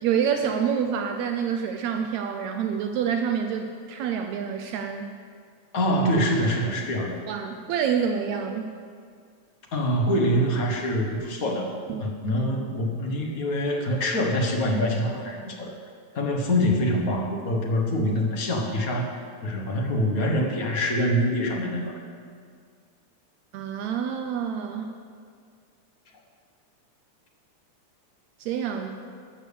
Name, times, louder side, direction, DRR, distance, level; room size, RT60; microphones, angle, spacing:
voice 1, 0.0-5.1 7.3-8.7 11.9-12.0 12.4-12.5 23.5-24.9 28.4-29.0, right 7 dB, 75° right, 5 dB, 1.8 m, -27 dB
voice 2, 5.7-7.2 9.7-11.7 12.0-15.7 16.1-19.1 19.4-22.0, equal, 45° left, 0 dB, 1.2 m, -25 dB
13.5 x 7.0 x 6.8 m, 2.1 s
omnidirectional pair, 3.4 m